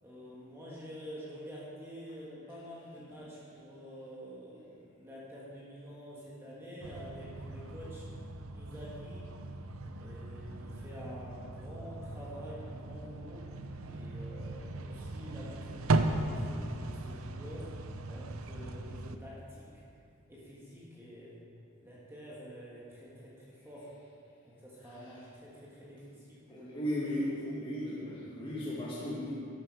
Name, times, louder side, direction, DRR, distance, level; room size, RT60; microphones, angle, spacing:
voice 1, 0.0-8.1 8.5-9.3 10.0-13.5 13.8-17.7 18.1-19.8 20.3-21.3 21.8-23.9 24.4-26.8, equal, 10° right, -7 dB, 1.9 m, -48 dB
sound 1, 6.8-19.2, right 2 dB, 70° right, 0.7 m, -37 dB
voice 2, 24.8-25.1 26.5-29.3, left 1 dB, 25° left, -8 dB, 2.0 m, -36 dB
13.0 x 11.5 x 4.8 m, 2.5 s
head